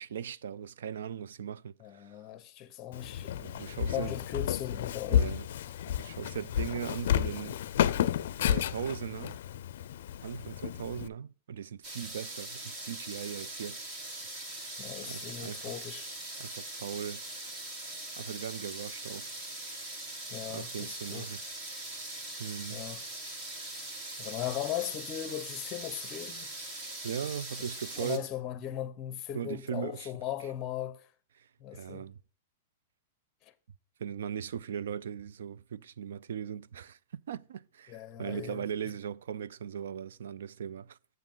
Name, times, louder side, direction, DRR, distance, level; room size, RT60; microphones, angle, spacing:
voice 1, 0.0-2.2 3.4-4.1 5.1-5.5 5.9-7.6 8.4-9.4 10.2-13.9 15.0-15.8 16.4-17.2 18.2-19.3 20.5-21.4 22.4-22.8 27.0-28.3 29.3-30.1 31.4-32.2 34.0-41.0, right 8 dB, 80° right, 0.4 m, -39 dB
voice 2, 1.8-3.4 3.8-5.4 14.8-16.1 20.3-21.3 22.7-23.0 24.2-26.5 28.0-31.1 31.6-32.1 33.4-33.5 37.9-38.7, left 11 dB, 20° left, 0.8 m, -38 dB
Walk footsteps, 2.9-11.1, left 10 dB, 60° left, 0.4 m, -31 dB
sound 1, 11.8-28.2, right 2 dB, 30° right, 1.5 m, -41 dB
7.8 x 7.4 x 3.7 m
supercardioid pair, 170°, 0 cm